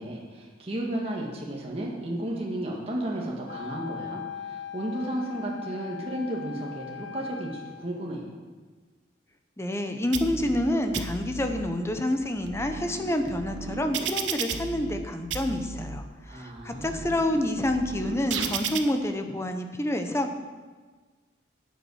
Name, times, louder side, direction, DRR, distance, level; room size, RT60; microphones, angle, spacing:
voice 1, 0.0-8.3 16.3-17.0, right 1 dB, 30° right, -2 dB, 1.7 m, -33 dB
Wind instrument woodwind instrument, 3.5-7.9, left 9 dB, 80° left, 0.8 m, -40 dB
voice 2, 9.6-20.4, left 1 dB, 15° left, 6 dB, 0.9 m, -28 dB
sound 1, 10.1-10.7 10.9-11.7 12.2-15.0 15.3-16.0 16.6-18.8, right 6 dB, 85° right, 0.9 m, -34 dB
11.5 x 8.4 x 6.4 m, 1.4 s
head